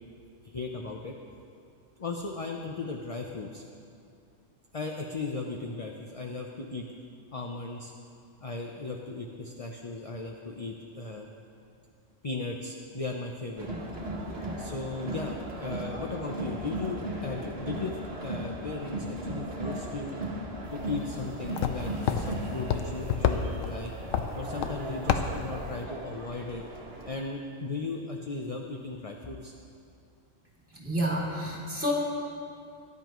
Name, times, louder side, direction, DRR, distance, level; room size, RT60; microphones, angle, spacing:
voice 1, 0.4-1.1 2.0-3.6 4.7-6.9 7.3-7.9 8.4-11.3 12.2-13.7 14.5-20.2 20.7-23.9 24.4-26.6 27.1-29.5, left 3 dB, 35° left, 1 dB, 0.6 m, -36 dB
Crowd, 13.6-27.1, right 1 dB, 50° right, 1.5 m, -37 dB
sound 1, 20.6-25.8, left 7 dB, 80° left, 1.1 m, -31 dB
voice 2, 30.7-31.9, equal, 10° right, -5 dB, 2.6 m, -29 dB
18.5 x 10.5 x 3.1 m, 2.4 s
omnidirectional pair, 1.3 m